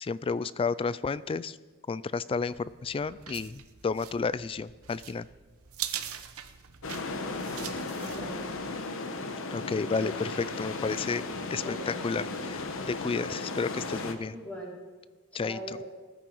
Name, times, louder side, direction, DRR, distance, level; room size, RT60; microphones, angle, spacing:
voice 1, 0.0-1.6 1.9-5.3 9.5-11.2 11.5-14.3 15.3-15.6, left 4 dB, 25° left, 18 dB, 0.3 m, -31 dB
sound 1, 2.5-8.7, right 10 dB, 90° right, 0.9 m, -42 dB
sound 2, 6.8-14.1, left 3 dB, 65° left, 1.1 m, -35 dB
voice 2, 7.5-8.5 11.6-12.1 14.3-14.8 15.3-15.9, right 1 dB, 5° left, -5 dB, 3.9 m, -42 dB
19.0 x 9.4 x 4.6 m, 1.3 s
head